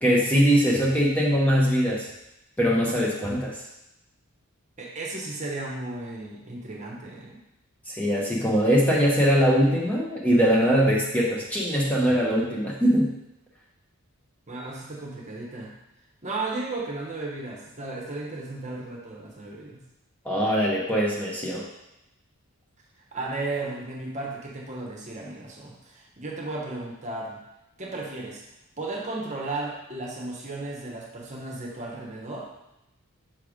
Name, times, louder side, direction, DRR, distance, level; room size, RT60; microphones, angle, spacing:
voice 1, 0.0-2.1 2.6-3.6 7.9-13.1 20.2-21.6, equal, 5° left, -5 dB, 0.8 m, -22 dB
voice 2, 4.8-7.4 14.5-15.8 16.2-19.8 23.1-27.4 27.8-28.4 28.8-32.5, right 2 dB, 35° right, -2 dB, 1.0 m, -34 dB
6.1 x 3.3 x 4.9 m, 0.89 s
head